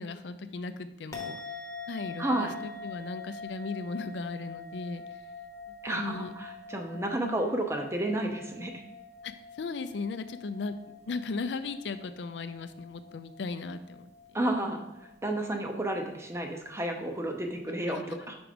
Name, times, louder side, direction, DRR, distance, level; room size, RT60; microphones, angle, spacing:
voice 1, 0.0-1.4 1.9-5.0 5.9-6.3 7.1-7.6 9.2-9.3 9.6-10.7 11.1-14.1 17.9-18.3, left 4 dB, 70° left, 11 dB, 0.4 m, -37 dB
sound 1, 1.1-17.6, left 4 dB, 15° left, 1.0 m, -45 dB
voice 2, 2.2-2.5 5.8-8.8 14.3-14.8 15.2-18.4, right 1 dB, 15° right, 4 dB, 0.7 m, -31 dB
5.1 x 4.6 x 5.0 m, 0.96 s
head